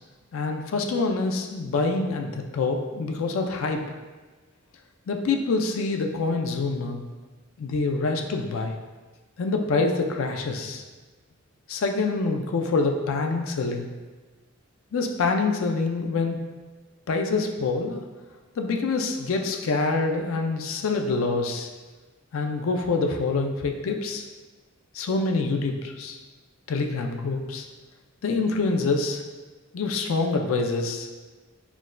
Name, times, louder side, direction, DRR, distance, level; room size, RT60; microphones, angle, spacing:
voice 1, 0.3-3.8 5.1-7.0 7.6-8.8 9.4-10.8 11.7-13.9 14.9-16.4 17.1-18.0 18.6-21.7 22.3-24.2 24.9-26.2 26.7-27.7 28.2-29.2 29.7-31.1, left 3 dB, 85° left, 4 dB, 0.4 m, -26 dB
5.8 x 2.2 x 2.5 m, 1.3 s
head